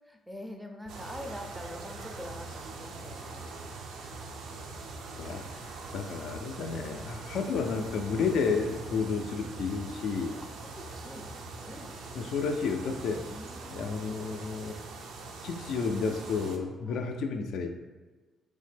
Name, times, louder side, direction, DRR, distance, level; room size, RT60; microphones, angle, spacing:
voice 1, 0.0-3.5 10.4-12.3 13.0-13.9 16.9-17.0, left 1 dB, 5° right, 3 dB, 0.4 m, -45 dB
sound 1, 0.9-16.6, right 3 dB, 85° right, 0.4 m, -42 dB
voice 2, 5.9-10.4 12.1-13.2 13.7-14.8 15.4-17.8, left 5 dB, 80° left, 5 dB, 0.3 m, -31 dB
3.2 x 2.1 x 3.3 m, 1.3 s
cardioid pair, 90°, 0 cm